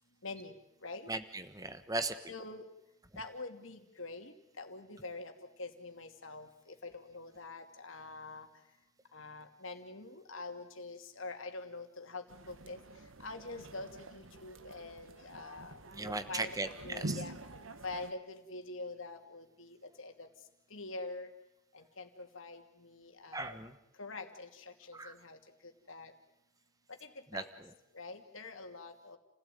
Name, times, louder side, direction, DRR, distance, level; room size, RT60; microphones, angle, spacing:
voice 1, 0.2-0.5 0.8-1.1 2.3-2.6 3.2-5.3 5.6-8.5 9.1-12.8 13.2-15.7 16.0-16.5 16.8-17.3 17.8-20.3 20.7-21.3 21.7-23.6 24.0-25.4 25.9-26.1 27.0-27.5 27.9-29.2, left 3 dB, 70° left, 5 dB, 2.7 m, -45 dB
voice 2, 1.1-2.1 15.9-17.2 23.3-23.7 24.9-25.1 27.3-27.7, right 2 dB, 15° right, 10 dB, 1.3 m, -38 dB
sound 1, 12.3-18.1, right 2 dB, 70° right, 1.4 m, -46 dB
29.5 x 16.5 x 9.3 m, 0.86 s
head